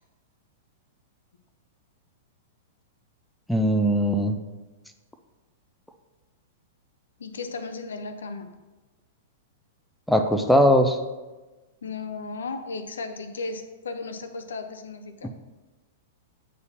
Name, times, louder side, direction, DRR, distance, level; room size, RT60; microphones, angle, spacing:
voice 1, 3.5-4.4 10.1-11.0 15.2-15.3, equal, ahead, 5 dB, 0.4 m, -20 dB
voice 2, 7.2-8.5 11.8-15.3, left 3 dB, 65° left, 9 dB, 0.5 m, -35 dB
8.4 x 4.0 x 2.8 m, 1.2 s
figure-of-eight pair, 100°, 0 cm